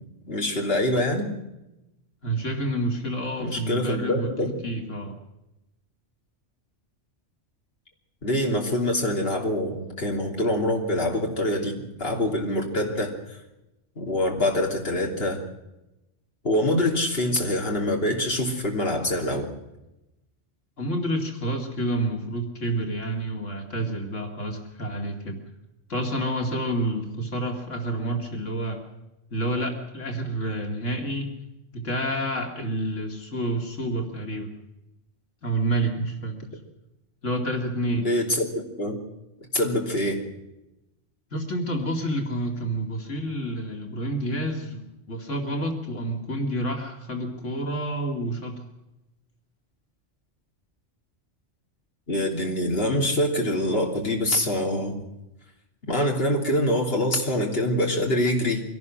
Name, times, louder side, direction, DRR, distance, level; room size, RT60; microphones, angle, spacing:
voice 1, 0.3-1.3 3.4-4.6 8.2-13.1 14.0-15.4 16.4-19.5 38.0-38.9 39.5-40.2 52.1-55.0 55.9-58.6, left 1 dB, 55° left, 0 dB, 3.4 m, -25 dB
voice 2, 2.2-4.3 4.6-5.2 20.8-25.4 25.9-28.9 29.3-31.3 31.7-34.5 35.4-36.3 37.2-38.1 41.3-48.6, right 1 dB, 90° left, 2 dB, 2.8 m, -29 dB
24.0 x 17.5 x 6.2 m, 0.94 s
omnidirectional pair, 1.2 m